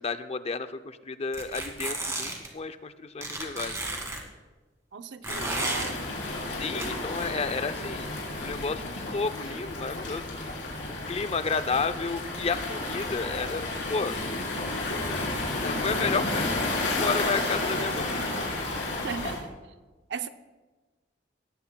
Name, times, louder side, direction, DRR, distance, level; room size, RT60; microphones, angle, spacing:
voice 1, 0.0-3.7 6.5-8.2 8.4-10.2 11.1-14.2 15.6-18.1, left 4 dB, 35° left, 12 dB, 0.5 m, -32 dB
sound 1, 1.3-2.5 3.2-4.2 5.2-5.9 6.8-6.9, right 2 dB, 15° right, 1.9 m, -32 dB
voice 2, 4.9-6.0 19.0-19.5 20.1-20.3, right 6 dB, 70° right, 10 dB, 0.6 m, -36 dB
Waves surf, 5.3-19.4, left 2 dB, 80° left, 3.9 m, -32 dB
18.0 x 14.5 x 2.3 m, 1.2 s
head